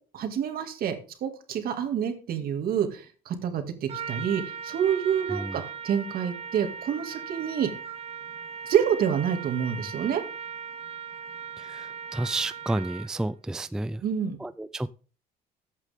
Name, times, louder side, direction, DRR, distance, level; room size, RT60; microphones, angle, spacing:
voice 1, 0.1-1.0 1.2-7.7 8.6-10.2 14.0-14.4, right 8 dB, 60° right, 2.2 m, -27 dB
Trumpet, 3.9-13.2, right 6 dB, 35° right, 0.8 m, -38 dB
voice 2, 11.6-14.0 14.4-14.9, right 2 dB, 5° right, 0.4 m, -31 dB
14.0 x 8.4 x 3.6 m
cardioid pair, 110°, 17 cm